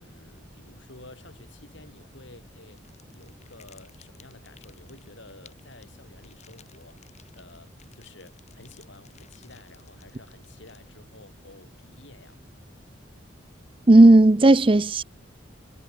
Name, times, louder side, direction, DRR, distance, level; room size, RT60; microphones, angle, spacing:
voice 1, 0.0-2.8 3.1-12.4, left 2 dB, 65° left, 6.8 m, -51 dB
sound 1, 2.7-11.2, left 8 dB, 35° left, 6.7 m, -57 dB
voice 2, 13.9-15.0, right 2 dB, 25° right, 0.6 m, -14 dB
head